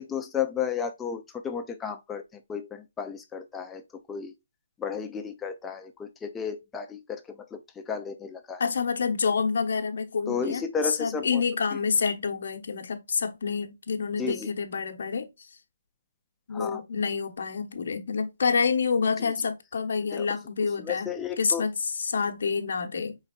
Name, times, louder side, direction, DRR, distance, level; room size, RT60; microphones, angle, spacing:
voice 1, 0.0-4.3 4.8-8.6 10.3-11.4 14.2-14.5 16.5-16.8 19.2-19.3 20.1-20.3 20.8-21.7, left 6 dB, 10° left, 0.4 m, -33 dB
voice 2, 8.6-15.6 16.5-21.1 21.4-23.2, left 5 dB, 55° left, 0.9 m, -28 dB
5.2 x 4.0 x 2.3 m
hypercardioid pair, 170°, 0 cm